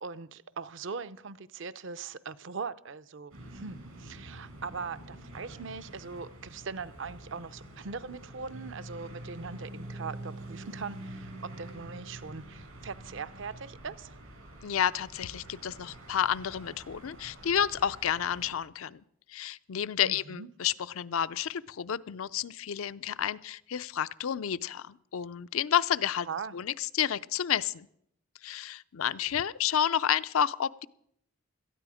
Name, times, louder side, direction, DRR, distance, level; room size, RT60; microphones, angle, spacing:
voice 1, 0.0-11.3 11.6-14.2 20.0-20.5 26.3-26.5, right 5 dB, 60° right, 0.6 m, -40 dB
sound 1, 3.3-18.6, right 1 dB, 85° right, 6.8 m, -46 dB
voice 2, 14.6-19.0 19.3-26.3 26.5-27.9 28.4-30.9, left 9 dB, 80° left, 0.5 m, -30 dB
17.5 x 13.0 x 5.0 m
head